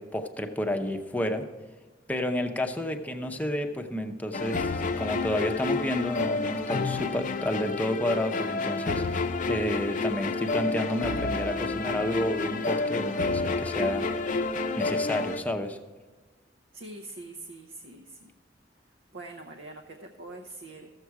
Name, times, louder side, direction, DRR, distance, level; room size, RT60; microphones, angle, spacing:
voice 1, 0.0-1.4 2.1-14.1 14.8-15.8, left 1 dB, 10° left, 5 dB, 0.7 m, -30 dB
sound 1, 4.3-15.4, left 3 dB, 45° left, 0.6 m, -29 dB
voice 2, 16.7-18.3 19.1-20.9, right 2 dB, 70° right, 3 dB, 0.7 m, -43 dB
14.0 x 7.3 x 4.7 m, 1.3 s
head